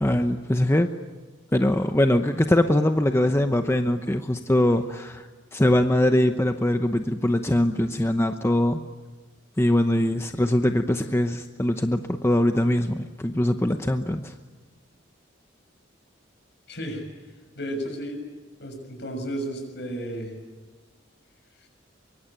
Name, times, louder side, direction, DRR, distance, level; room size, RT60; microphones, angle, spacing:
voice 1, 0.0-0.9 1.5-8.8 9.6-14.3, left 1 dB, 15° left, 7 dB, 0.9 m, -22 dB
voice 2, 16.7-17.0 17.6-18.2 18.6-20.4 21.6-21.7, right 1 dB, 60° left, 5 dB, 6.8 m, -33 dB
24.5 x 24.0 x 9.0 m, 1.3 s
head